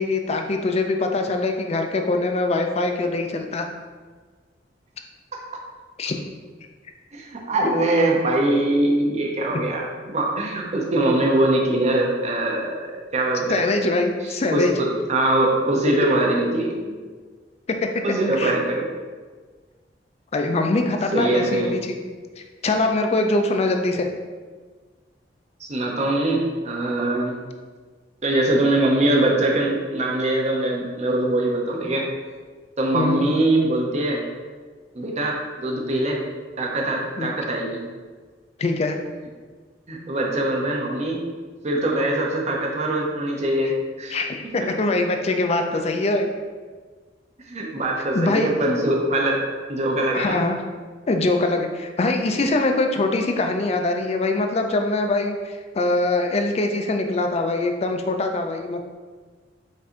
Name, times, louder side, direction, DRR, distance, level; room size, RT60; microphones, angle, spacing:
voice 1, 0.0-3.7 6.0-6.2 13.5-14.7 17.7-17.9 18.3-18.6 20.3-21.9 22.4-24.1 32.9-33.3 37.2-37.3 38.6-39.0 44.1-46.3 48.1-48.5 50.1-50.6 51.1-58.8, left 2 dB, 35° left, 4 dB, 0.4 m, -23 dB
voice 2, 7.1-13.7 14.5-17.0 18.0-18.8 20.5-20.7 21.1-21.7 25.6-27.3 28.2-32.1 32.8-34.2 34.9-36.2 36.6-37.8 39.9-41.2 41.6-44.2 47.5-49.4 49.7-50.4, right 1 dB, 40° right, -1 dB, 0.7 m, -22 dB
5.4 x 2.6 x 3.8 m, 1.4 s
head